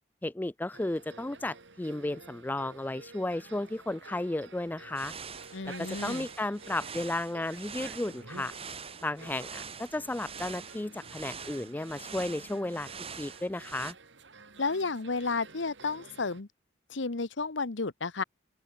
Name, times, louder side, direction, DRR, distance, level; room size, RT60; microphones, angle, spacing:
voice 1, 0.2-5.1 5.6-8.5 9.0-12.9 13.2-14.0, left 2 dB, 10° left, 0.3 m, -34 dB
sound 1, 0.7-16.4, right 3 dB, 75° right, 2.4 m, -52 dB
sound 2, 4.9-13.9, right 6 dB, 30° right, 5.5 m, -44 dB
voice 2, 5.5-6.3 14.6-16.5 16.9-18.2, left 4 dB, 80° left, 1.1 m, -32 dB
open air
head